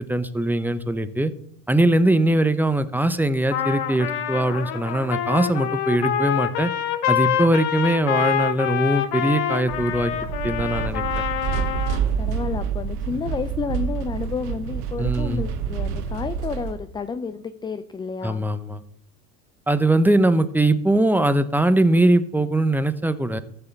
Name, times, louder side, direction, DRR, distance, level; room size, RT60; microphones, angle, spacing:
voice 1, 0.0-1.3 1.7-6.7 7.1-10.1 10.4-11.2 15.0-15.5 18.2-18.8 19.7-23.4, right 1 dB, 5° right, 12 dB, 0.7 m, -21 dB
Trumpet, 3.5-12.0, left 10 dB, 55° left, 1.3 m, -26 dB
sound 1, 9.7-16.7, right 7 dB, 80° right, 1.3 m, -28 dB
voice 2, 12.2-18.4, left 5 dB, 10° left, 11 dB, 0.3 m, -30 dB
13.5 x 5.7 x 7.0 m, 0.69 s
hypercardioid pair, 85°, 47 cm